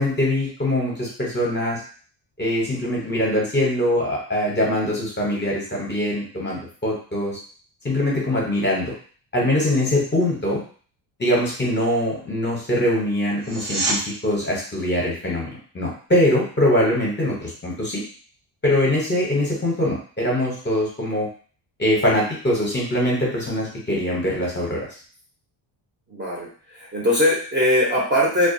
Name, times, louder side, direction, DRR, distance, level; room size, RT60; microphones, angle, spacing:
voice 1, 0.0-1.8 2.4-7.4 7.8-8.9 9.3-10.6 11.2-18.0 18.6-21.3 21.8-24.9, left 1 dB, 25° left, -4 dB, 0.7 m, -22 dB
sound 1, 13.4-14.0 25.3-25.4, right 2 dB, 60° right, 0.7 m, -25 dB
voice 2, 26.1-26.5 26.9-28.5, left 1 dB, 25° right, -4 dB, 0.7 m, -20 dB
2.3 x 2.2 x 2.6 m, 0.43 s
cardioid pair, 135°, 48 cm